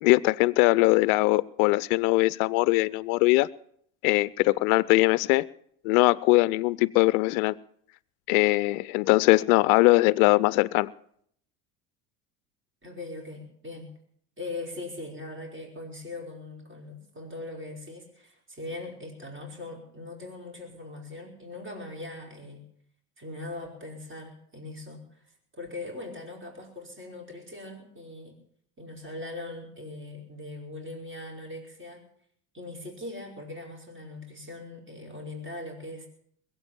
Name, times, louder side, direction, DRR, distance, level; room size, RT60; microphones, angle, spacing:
voice 1, 0.0-3.5 4.0-5.5 5.8-7.5 8.3-10.9, left 21 dB, 60° left, 20 dB, 0.6 m, -21 dB
voice 2, 12.8-13.9 14.4-22.6 23.2-25.2 25.5-28.3 28.8-32.1 32.5-36.1, left 2 dB, 25° right, 0 dB, 4.9 m, -40 dB
21.0 x 8.2 x 7.4 m, 0.66 s
hypercardioid pair, 75°, 47 cm